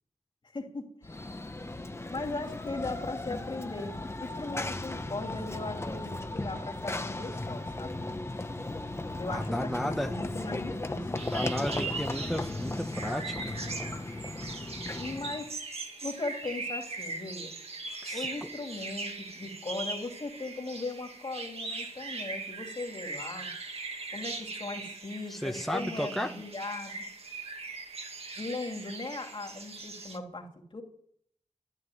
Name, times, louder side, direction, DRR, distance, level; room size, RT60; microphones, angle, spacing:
voice 1, 0.5-0.9 2.1-8.0 9.2-11.2 15.0-15.5 16.0-17.5 18.1-23.5 24.1-27.1 28.4-30.8, left 2 dB, 40° left, 3 dB, 2.9 m, -38 dB
Run / Train, 1.0-15.5, left 2 dB, 20° left, 1.2 m, -36 dB
voice 2, 9.3-10.1 11.3-13.6 18.0-18.3 25.3-26.3, equal, ahead, 3 dB, 1.1 m, -33 dB
sound 1, 11.2-30.2, right 3 dB, 55° right, 2.1 m, -40 dB
13.5 x 11.0 x 9.4 m, 0.68 s
wide cardioid pair, 90°, 12 cm